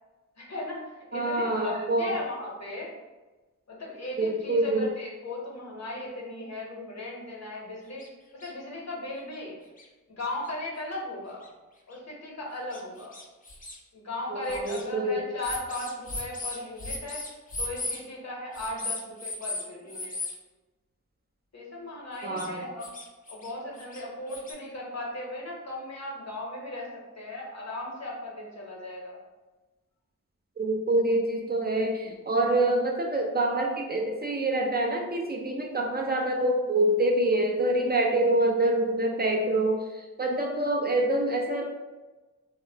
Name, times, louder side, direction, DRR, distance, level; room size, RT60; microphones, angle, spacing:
voice 1, 0.4-2.9 3.7-8.0 8.3-9.6 10.1-11.5 11.9-13.2 13.9-17.2 17.6-20.1 21.5-22.9 23.3-29.2, left 1 dB, 55° left, -2 dB, 0.8 m, -37 dB
voice 2, 1.1-2.1 4.2-4.9 14.3-15.2 22.2-22.6 30.6-41.7, right 1 dB, 30° right, 0 dB, 0.4 m, -26 dB
sound 1, 8.0-8.1 8.4-8.5 9.3-9.4 9.8-9.9 10.4-10.5 11.4-11.5 11.9-12.0 12.7-13.8 14.4-14.8 15.4-18.0 18.5-19.6 19.9-20.3 22.2-22.5 22.8-23.5 23.8-24.5, left 2 dB, 25° left, 0.5 m, -36 dB
2.7 x 2.0 x 2.6 m, 1.2 s
cardioid pair, 55°, 32 cm